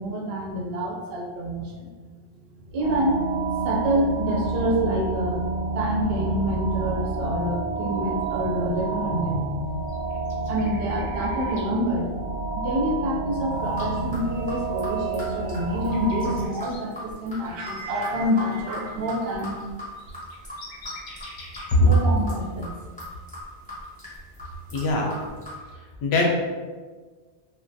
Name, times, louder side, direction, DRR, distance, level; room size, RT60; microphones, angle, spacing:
voice 1, 0.0-1.9 2.7-3.3 3.5-5.4 5.7-12.1 12.5-19.6 21.8-22.7, equal, 70° right, -1 dB, 0.7 m, -27 dB
sound 1, 2.8-16.5, right 3 dB, 30° right, 0.5 m, -29 dB
sound 2, 9.9-11.7 13.7-16.8 19.7-19.8 19.9-21.7 23.8-23.9, left 2 dB, 55° left, 0.6 m, -45 dB
sound 3, 13.5-25.6, left 1 dB, 10° left, 0.6 m, -40 dB
voice 2, 24.7-25.1 26.0-26.2, left 3 dB, 75° left, -1 dB, 0.8 m, -20 dB
2.3 x 2.2 x 2.5 m, 1.4 s
omnidirectional pair, 1.1 m